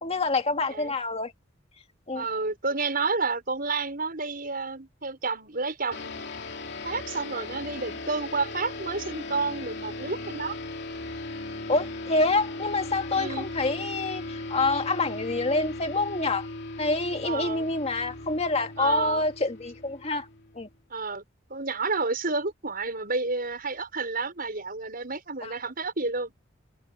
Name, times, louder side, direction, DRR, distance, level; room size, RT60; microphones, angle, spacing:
voice 1, 0.0-1.3 2.1-2.2 11.7-16.5 16.8-20.3 20.5-20.7 25.4-25.5, left 3 dB, 30° left, 2.3 m, -27 dB
voice 2, 2.1-6.2 6.8-10.6 13.1-13.5 17.2-17.7 18.8-19.2 20.9-21.2 21.5-26.3, right 4 dB, 50° right, 6.6 m, -30 dB
sound 1, 5.9-20.7, left 2 dB, 60° left, 2.8 m, -38 dB
head